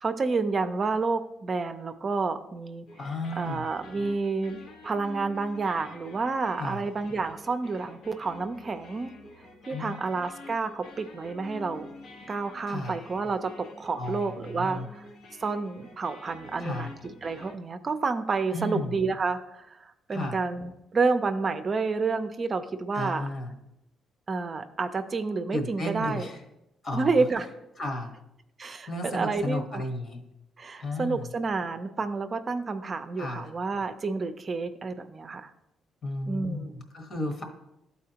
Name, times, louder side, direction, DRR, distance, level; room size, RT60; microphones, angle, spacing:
voice 1, 0.0-2.9 3.4-9.1 9.7-11.9 12.3-15.0 15.4-23.2 24.3-26.3 26.9-27.5 28.6-29.8 30.6-35.5 36.3-36.8, right 4 dB, 40° right, 8 dB, 0.5 m, -29 dB
sound 1, 2.9-17.5, left 2 dB, 80° left, 1.1 m, -48 dB
voice 2, 3.0-3.7 6.6-6.8 9.7-10.0 12.7-13.0 13.9-14.9 16.6-16.9 18.5-18.9 20.1-20.4 22.9-23.5 25.5-26.4 26.8-27.3 27.8-28.1 28.9-30.2 30.8-31.3 33.2-33.5 36.0-37.4, left 2 dB, 50° left, 4 dB, 1.3 m, -33 dB
12.0 x 4.2 x 2.8 m, 0.87 s
cardioid pair, 90°, 0 cm